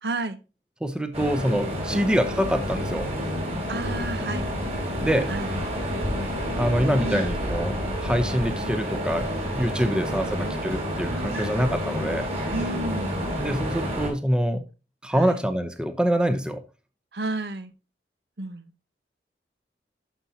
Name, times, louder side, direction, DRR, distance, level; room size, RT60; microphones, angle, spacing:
voice 1, 0.0-0.4 1.9-2.1 3.7-4.5 5.3-5.5 7.0-7.3 9.9-10.6 11.1-11.4 12.5-13.1 15.1-15.4 17.1-17.7 18.4-18.7, right 2 dB, 65° right, 0.9 m, -32 dB
voice 2, 0.8-3.1 5.0-5.3 6.5-12.3 13.4-14.7 15.0-16.6, equal, 5° right, 0.7 m, -25 dB
sound 1, 1.1-14.1, equal, 35° right, 3.1 m, -29 dB
12.0 x 5.7 x 2.8 m
head